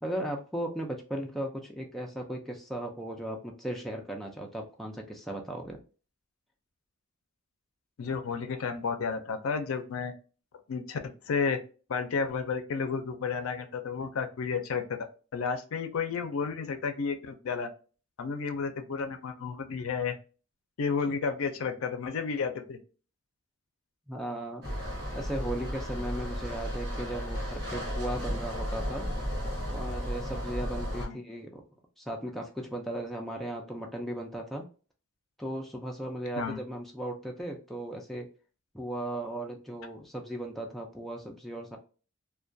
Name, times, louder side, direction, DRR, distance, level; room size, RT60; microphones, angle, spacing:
voice 1, 0.0-5.8 24.1-24.6 25.1-29.1 29.7-31.6 32.0-34.6 35.4-38.3 38.7-41.8, right 1 dB, ahead, 0 dB, 0.3 m, -36 dB
voice 2, 8.0-10.1 10.7-11.6 11.9-17.7 18.2-20.2 20.8-22.8 31.0-31.2 36.4-36.6, left 5 dB, 75° left, 8 dB, 0.4 m, -32 dB
sound 1, 24.6-31.1, equal, 50° right, 0.9 m, -34 dB
2.3 x 2.1 x 2.5 m, 0.37 s
head